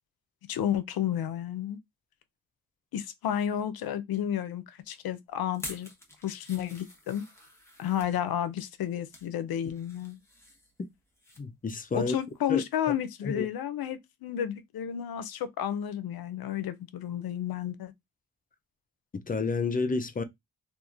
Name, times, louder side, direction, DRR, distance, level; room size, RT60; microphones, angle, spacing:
voice 1, 0.5-1.8 2.9-5.9 6.2-7.2 7.8-10.2 11.9-17.9, left 10 dB, 85° left, 0.5 m, -31 dB
sound 1, 5.5-8.1 8.7-9.3 9.7-11.4 11.7-11.9 12.3-12.4, left 1 dB, 5° left, 0.9 m, -47 dB
voice 2, 11.4-12.2 12.5-12.6 13.2-13.5 19.1-20.2, left 4 dB, 25° left, 0.4 m, -30 dB
2.9 x 2.4 x 2.4 m
cardioid pair, 85°, 36 cm